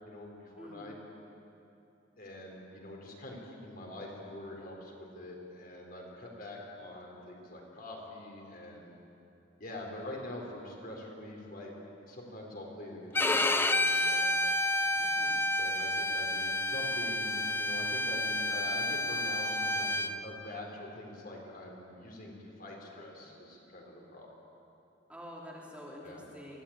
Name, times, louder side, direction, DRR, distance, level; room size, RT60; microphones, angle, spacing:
voice 1, 0.0-1.0 2.2-8.9 9.6-11.7 12.1-14.3 15.6-24.3 26.0-26.2, left 1 dB, 45° left, -1 dB, 4.3 m, -44 dB
voice 2, 0.6-0.9 14.9-15.4 25.1-26.6, equal, 5° right, -4 dB, 2.9 m, -47 dB
Bowed string instrument, 13.1-20.1, left 1 dB, 10° left, 0.6 m, -30 dB
23.5 x 16.5 x 8.9 m, 2.8 s
head